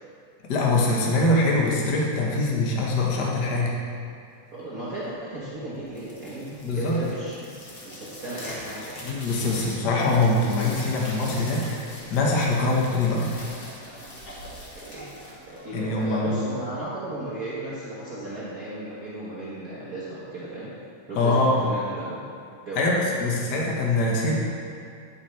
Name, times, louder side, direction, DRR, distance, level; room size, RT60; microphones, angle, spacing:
voice 1, 0.5-3.7 6.6-7.0 9.0-13.3 15.7-16.4 21.2-21.6 22.8-24.4, left 2 dB, 70° left, -3 dB, 0.9 m, -23 dB
voice 2, 4.5-7.6 7.8-9.0 14.7-15.1 15.5-20.7 21.1-22.2 22.6-22.9, right 1 dB, 80° right, -9 dB, 0.8 m, -35 dB
sound 1, 5.8-16.2, left 1 dB, 45° left, 1.2 m, -41 dB
9.4 x 8.5 x 3.3 m, 2.4 s
omnidirectional pair, 3.6 m